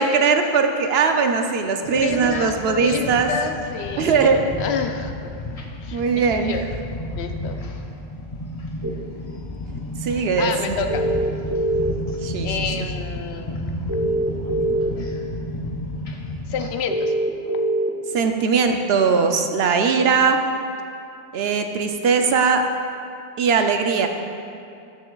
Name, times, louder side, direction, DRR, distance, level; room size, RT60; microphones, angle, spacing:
voice 1, 0.0-3.3 4.0-4.4 5.9-6.6 10.0-10.9 12.2-12.8 18.1-20.4 21.3-22.7 23.4-24.1, right 5 dB, 70° right, 5 dB, 0.8 m, -20 dB
sound 1, 1.8-16.7, left 1 dB, 40° left, 0.6 m, -32 dB
voice 2, 1.9-5.3 5.8-6.6 7.2-7.7 10.4-11.0 12.4-13.6 16.5-17.1, left 6 dB, 75° left, 6 dB, 0.8 m, -29 dB
sound 2, 8.8-8.9 10.9-12.1 13.9-14.9 16.9-17.9, right 1 dB, 20° right, 0.7 m, -22 dB
13.0 x 6.3 x 2.3 m, 2.5 s
omnidirectional pair, 1.1 m